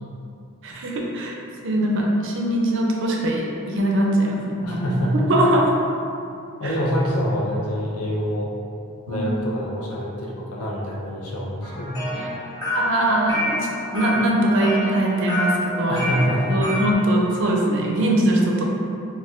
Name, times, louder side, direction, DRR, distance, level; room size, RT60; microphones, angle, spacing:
voice 1, 0.6-1.3 1.6-5.7 9.1-9.3 12.7-13.5 13.9-16.0 16.5-18.6, right 1 dB, 55° right, -1 dB, 0.5 m, -21 dB
voice 2, 4.6-5.2 6.6-8.5 9.1-12.0 15.9-16.6, equal, 80° left, -4 dB, 0.6 m, -26 dB
sound 1, 11.6-16.9, left 1 dB, 20° left, 1.1 m, -28 dB
4.1 x 2.3 x 2.4 m, 2.6 s
head